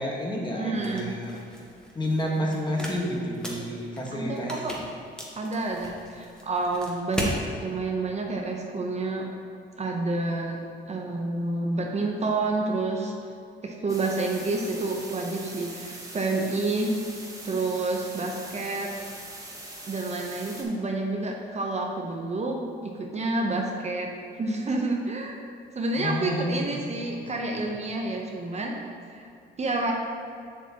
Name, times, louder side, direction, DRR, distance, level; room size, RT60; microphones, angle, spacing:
voice 1, 0.0-1.4 1.9-4.8 26.0-26.8 27.2-27.3, equal, 20° left, -2 dB, 1.4 m, -30 dB
voice 2, 0.5-1.1 4.1-4.7 5.3-7.3 7.6-9.3 9.8-10.6 10.9-13.1 13.6-17.0 17.4-18.9 19.9-24.1 24.4-25.4 25.7-28.8 29.1-29.3 29.6-29.9, right 2 dB, 35° right, 0 dB, 0.8 m, -29 dB
sound 1, 0.8-7.4, equal, 5° left, 1.3 m, -38 dB
sound 2, 13.9-20.6, right 2 dB, 15° right, 1.3 m, -42 dB
7.2 x 6.9 x 2.9 m, 2.6 s
cardioid pair, 90°, 20 cm